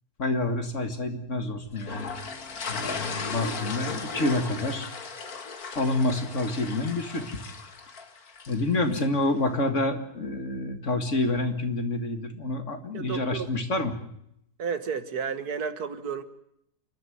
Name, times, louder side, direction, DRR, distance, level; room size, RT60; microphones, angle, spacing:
voice 1, 0.2-2.1 2.7-4.9 5.8-7.4 8.5-13.9, left 2 dB, 50° left, 7 dB, 2.4 m, -28 dB
sound 1, 1.8-9.0, left 4 dB, 65° left, 2.3 m, -36 dB
voice 2, 12.9-13.5 14.6-16.2, right 6 dB, 70° right, 11 dB, 2.0 m, -32 dB
29.0 x 12.5 x 9.3 m, 0.74 s
omnidirectional pair, 1.7 m